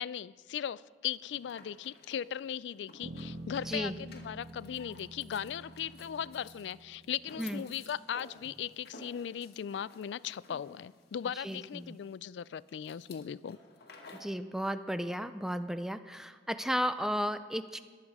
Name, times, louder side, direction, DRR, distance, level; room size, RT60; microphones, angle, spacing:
voice 1, 0.0-13.6, left 9 dB, 85° left, 20 dB, 0.3 m, -38 dB
sound 1, 1.1-14.4, left 3 dB, 65° left, 1.4 m, -55 dB
Bass guitar, 3.0-7.5, right 1 dB, 75° right, 1.2 m, -47 dB
voice 2, 11.4-12.0 14.2-17.8, equal, 5° right, 11 dB, 0.4 m, -34 dB
22.0 x 8.2 x 4.8 m, 1.5 s
head